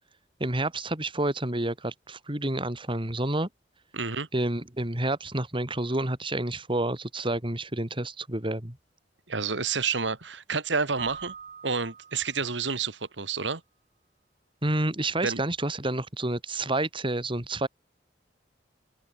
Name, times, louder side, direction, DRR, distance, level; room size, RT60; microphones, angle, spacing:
voice 1, 0.4-3.5 4.3-8.8 14.6-17.7, right 1 dB, 30° right, 3.0 m, -29 dB
voice 2, 3.9-4.3 9.3-11.3 11.6-13.6 15.2-15.4, right 5 dB, 80° right, 2.2 m, -29 dB
Keyboard (musical), 11.0-12.8, right 6 dB, 45° right, 2.6 m, -44 dB
open air
head